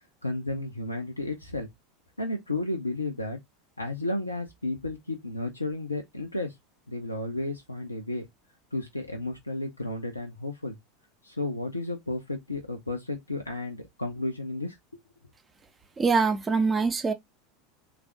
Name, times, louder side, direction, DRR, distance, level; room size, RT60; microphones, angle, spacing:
voice 1, 0.2-1.7 2.2-3.4 3.8-6.5 6.9-8.3 8.7-10.8 11.2-15.0, left 2 dB, 85° left, 0.6 m, -33 dB
voice 2, 16.0-17.1, right 4 dB, 20° right, 0.7 m, -24 dB
3.3 x 2.5 x 3.3 m
figure-of-eight pair, 80°, 0 cm